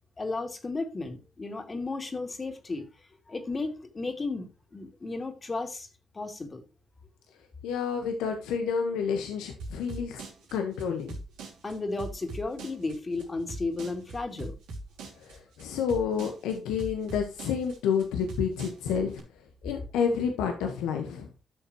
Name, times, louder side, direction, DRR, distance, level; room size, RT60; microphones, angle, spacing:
voice 1, 0.2-2.8 3.3-5.9 6.1-6.6 11.6-14.5, left 3 dB, 40° left, 2.8 m, -34 dB
voice 2, 7.6-10.2 10.5-11.2 15.2-19.2 19.6-21.3, left 6 dB, 85° left, 1.3 m, -29 dB
sound 1, 9.6-19.2, right 2 dB, 85° right, 3.2 m, -41 dB
12.5 x 6.7 x 3.0 m
supercardioid pair, 45°, 0 cm